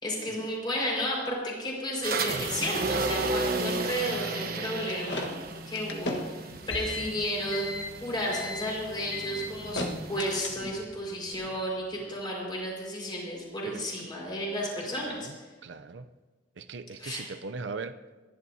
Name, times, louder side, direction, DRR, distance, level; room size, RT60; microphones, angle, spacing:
voice 1, 0.0-15.3 17.0-17.3, equal, 25° left, -3 dB, 4.9 m, -33 dB
sound 1, 2.0-10.4, right 3 dB, 55° right, 1.1 m, -34 dB
sound 2, 4.6-10.9, left 2 dB, 70° left, 1.5 m, -36 dB
sound 3, 8.6-12.6, equal, 5° right, 1.6 m, -48 dB
voice 2, 13.6-14.1 14.8-15.4 15.6-16.1 16.6-18.0, right 4 dB, 70° right, 10 dB, 0.6 m, -40 dB
30.0 x 11.0 x 2.8 m, 1.3 s
head